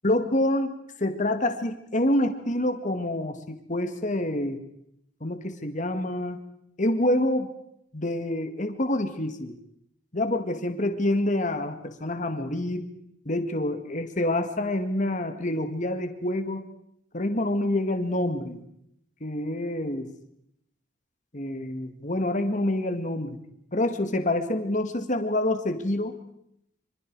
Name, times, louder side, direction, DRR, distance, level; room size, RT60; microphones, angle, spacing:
voice 1, 0.0-4.6 5.2-6.4 6.8-7.5 7.9-9.5 10.1-12.9 13.3-16.6 17.1-18.6 19.2-20.1 21.3-23.4 23.7-26.2, left 1 dB, 40° left, 7 dB, 2.0 m, -27 dB
25.5 x 25.5 x 4.8 m, 0.75 s
head